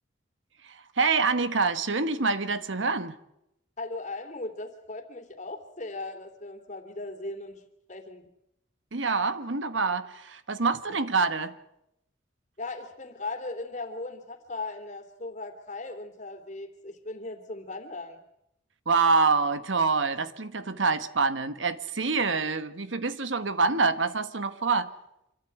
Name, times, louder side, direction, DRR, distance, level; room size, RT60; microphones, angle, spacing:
voice 1, 0.7-3.1 8.9-11.5 18.9-24.9, right 4 dB, 80° right, 12 dB, 1.4 m, -26 dB
voice 2, 3.8-7.6 7.9-8.2 12.6-18.2, left 2 dB, 40° left, 4 dB, 3.0 m, -38 dB
26.5 x 13.5 x 9.2 m, 0.82 s
head